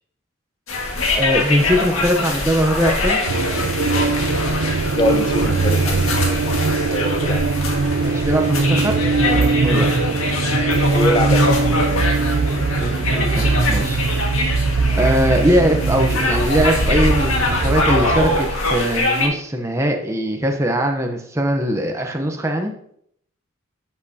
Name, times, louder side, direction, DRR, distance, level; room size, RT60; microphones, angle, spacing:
sound 1, 0.7-19.3, left 2 dB, 85° left, 1.8 m, -23 dB
voice 1, 1.2-3.2 8.0-9.9 12.7-14.2 15.0-22.7, equal, 15° right, 3 dB, 0.8 m, -21 dB
sound 2, 3.3-18.4, right 4 dB, 85° right, 0.5 m, -21 dB
voice 2, 4.9-6.4 6.9-7.4 10.9-12.2, left 1 dB, 20° left, 8 dB, 0.7 m, -24 dB
11.0 x 7.7 x 2.8 m, 0.67 s
head